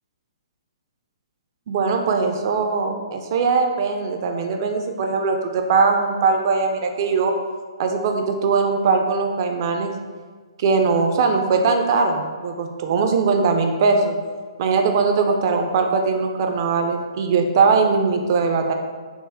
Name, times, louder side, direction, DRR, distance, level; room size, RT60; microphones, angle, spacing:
voice 1, 1.7-7.3 7.8-9.9 10.6-14.2 14.6-18.7, right 4 dB, 45° right, 4 dB, 0.4 m, -20 dB
3.4 x 2.0 x 3.3 m, 1.5 s
figure-of-eight pair, 125°, 3 cm